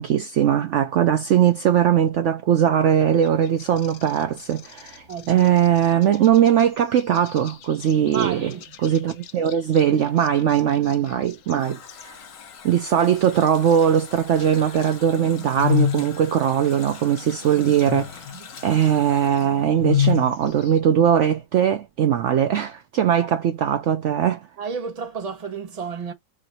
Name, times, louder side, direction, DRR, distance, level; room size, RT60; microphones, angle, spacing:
voice 1, 0.0-8.5 8.8-12.2 12.6-18.2 18.6-24.5, right 9 dB, 70° right, 0.7 m, -20 dB
sound 1, 3.2-13.9 14.1-20.8, left 9 dB, 85° left, 0.6 m, -32 dB
voice 2, 5.1-5.6 8.1-8.6 18.3-18.4 24.6-26.1, right 6 dB, 30° right, 0.8 m, -31 dB
Water tap faucet, 11.4-20.7 21.0-21.1, left 6 dB, 60° left, 1.7 m, -44 dB
4.8 x 2.6 x 4.2 m
omnidirectional pair, 1.9 m